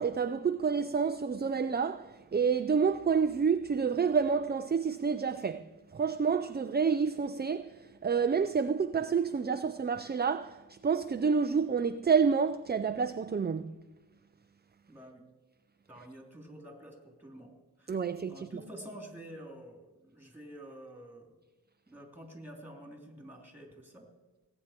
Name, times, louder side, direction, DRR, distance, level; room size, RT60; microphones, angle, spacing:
voice 1, 0.0-13.8 17.9-18.5, right 6 dB, 25° right, 0.4 m, -29 dB
voice 2, 14.9-15.2 15.9-18.0 18.3-21.3 21.9-24.1, right 1 dB, 5° right, 3.1 m, -49 dB
18.5 x 9.0 x 4.4 m
wide cardioid pair, 50°, 42 cm